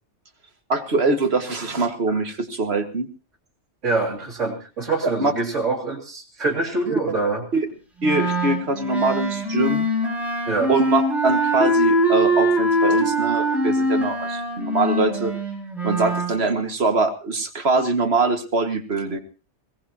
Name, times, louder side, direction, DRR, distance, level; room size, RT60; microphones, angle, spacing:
voice 1, 0.7-3.1 5.0-5.3 7.5-7.7 8.0-9.9 10.7-15.3 15.8-19.2, right 3 dB, 60° right, 7 dB, 2.0 m, -23 dB
voice 2, 3.8-7.4 10.5-10.7, right 3 dB, 90° right, -4 dB, 3.3 m, -25 dB
Wind instrument woodwind instrument, 8.0-16.3, equal, ahead, 5.6 m, -22 dB
21.0 x 18.0 x 2.9 m, 0.33 s
omnidirectional pair, 1.2 m